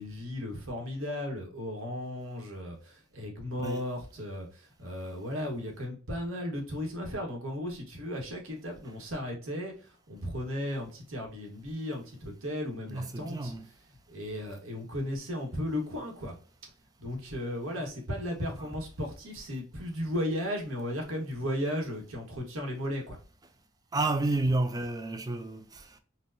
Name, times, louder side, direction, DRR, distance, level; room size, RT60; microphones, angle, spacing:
voice 1, 0.0-13.5 14.1-16.3 17.0-23.2, left 1 dB, 80° right, 1.1 m, -35 dB
voice 2, 12.9-13.7 17.7-17.8 18.6-18.7 23.9-26.0, right 2 dB, 20° right, 0.4 m, -31 dB
4.3 x 2.1 x 2.5 m
head